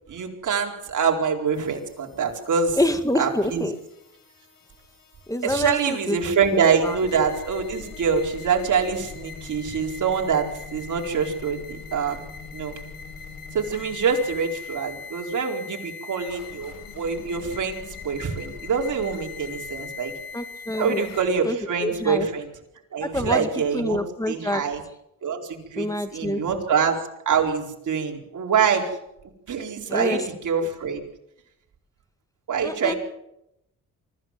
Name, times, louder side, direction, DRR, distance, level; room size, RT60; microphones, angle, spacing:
voice 1, 0.1-2.8 3.1-3.6 5.4-12.2 12.5-12.8 13.5-20.1 20.8-22.5 22.9-24.0 24.3-24.8 25.2-28.9 29.5-31.0 32.5-32.9, right 6 dB, 60° right, 1 dB, 4.4 m, -25 dB
sound 1, 1.5-21.2, left 5 dB, 80° left, 6.9 m, -41 dB
voice 2, 2.8-3.7 5.3-6.2 6.5-7.0 20.3-21.1 21.4-22.3 23.0-23.5 23.7-24.6 25.8-26.4 29.9-30.2 32.6-32.9, left 1 dB, 10° left, 9 dB, 2.1 m, -26 dB
24.5 x 15.0 x 7.6 m, 0.82 s
cardioid pair, 85°, 33 cm